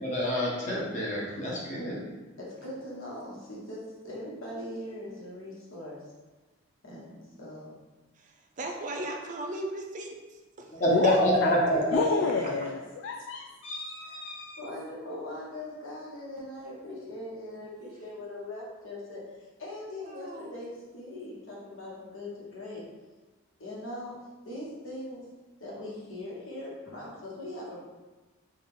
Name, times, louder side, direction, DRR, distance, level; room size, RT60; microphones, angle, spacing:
voice 1, 0.0-2.0 10.7-12.7, equal, 35° left, -4 dB, 1.1 m, -27 dB
voice 2, 2.4-6.0 6.8-7.7 10.9-11.1 11.7-12.5 14.0-14.2 14.6-19.2 19.6-22.8 23.6-24.2 24.4-25.2 25.6-27.8, left 1 dB, 80° left, -5 dB, 1.3 m, -40 dB
voice 3, 8.6-10.1 10.6-10.7 11.0-11.2 20.1-20.5, right 1 dB, 40° right, 1 dB, 0.5 m, -36 dB
voice 4, 11.9-14.6, left 4 dB, 60° left, 2 dB, 0.3 m, -30 dB
5.1 x 2.5 x 3.6 m, 1.2 s
head